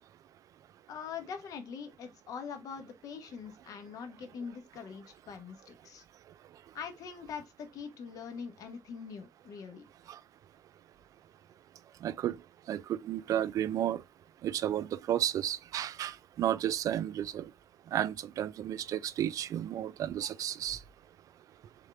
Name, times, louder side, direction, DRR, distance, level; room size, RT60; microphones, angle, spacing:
voice 1, 0.9-6.0 6.7-9.8, left 6 dB, 75° left, 1.0 m, -43 dB
voice 2, 12.0-12.4 12.7-14.0 14.4-17.5 17.9-20.8, right 11 dB, 70° right, 0.3 m, -32 dB
3.7 x 3.4 x 3.2 m
cardioid pair, 80°, 6 cm